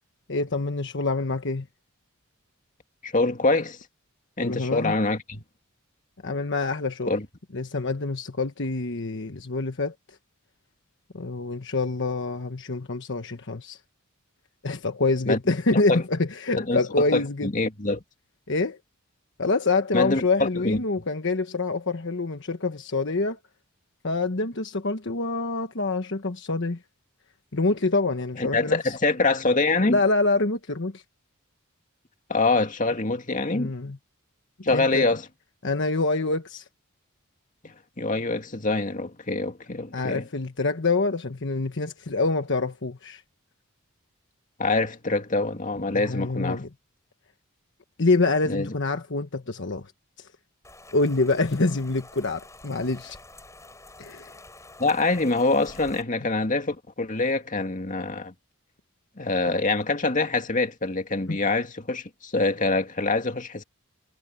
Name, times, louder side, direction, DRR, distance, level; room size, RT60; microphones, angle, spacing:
voice 1, 0.3-1.7 4.4-4.9 6.2-7.1 7.5-10.2 11.1-13.8 14.6-17.5 18.5-18.8 19.4-23.4 24.0-26.8 27.5-29.0 29.9-31.0 33.5-34.0 34.7-35.1 35.6-36.7 39.9-43.2 45.9-46.7 48.0-49.9 50.2-50.3 50.9-53.2 54.0-54.4 61.3-61.4, left 3 dB, 55° left, 1.3 m, -26 dB
voice 2, 3.0-3.8 4.4-5.4 7.1-7.3 15.3-15.4 15.9-16.0 16.6-18.0 19.9-20.8 28.4-30.0 32.3-33.7 34.6-35.3 37.6-40.2 44.6-46.6 48.4-48.7 54.8-58.3 59.2-63.6, left 3 dB, 35° left, 2.1 m, -25 dB
Rain, 50.6-56.0, left 2 dB, 15° left, 6.7 m, -47 dB
head